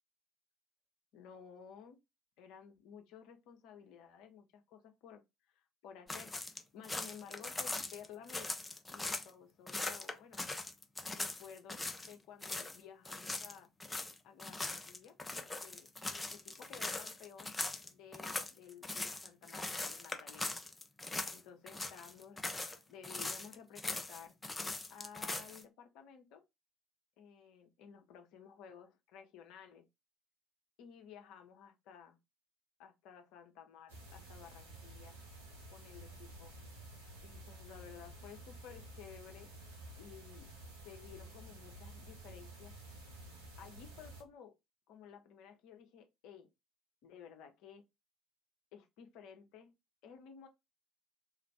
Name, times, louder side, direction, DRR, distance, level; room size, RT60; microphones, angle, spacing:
voice 1, 1.1-2.0 2.4-5.2 5.5-6.3 6.7-8.5 8.9-10.4 11.1-13.7 14.2-15.2 15.4-17.5 17.9-20.5 21.3-22.5 22.9-24.3 24.9-26.4 27.2-29.9 30.8-32.2 32.8-35.2 35.7-36.6 37.2-39.5 40.0-40.5 40.8-42.7 43.6-44.5 44.9-46.5 47.0-47.8 48.7-49.7 50.0-50.5, left 8 dB, 60° left, 0.6 m, -54 dB
sound 1, 6.1-9.3 9.7-12.1 12.4-12.8 13.0-21.4 21.7-22.8 23.0-25.6, left 2 dB, 15° left, 0.5 m, -41 dB
sound 2, 33.9-44.2, right 1 dB, 75° right, 0.8 m, -52 dB
3.1 x 2.4 x 3.2 m
figure-of-eight pair, 55°, 0 cm